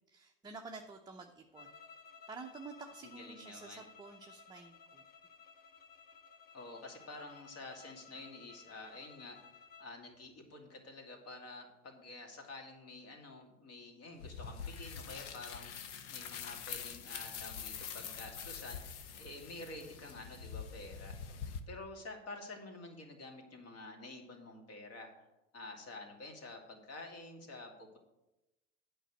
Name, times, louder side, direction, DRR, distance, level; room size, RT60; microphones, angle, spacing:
voice 1, 0.1-1.7 2.3-5.0, right 4 dB, 10° right, 2 dB, 0.7 m, -50 dB
sound 1, 1.5-10.0, left 6 dB, 25° left, 1.0 m, -57 dB
voice 2, 3.0-3.8 6.5-9.4 9.8-25.1 25.5-28.0, left 2 dB, 40° left, 3 dB, 2.4 m, -49 dB
sound 2, 14.2-21.6, left 7 dB, 65° left, 1.2 m, -45 dB
9.0 x 5.4 x 7.8 m, 0.98 s
hypercardioid pair, 85°, 37 cm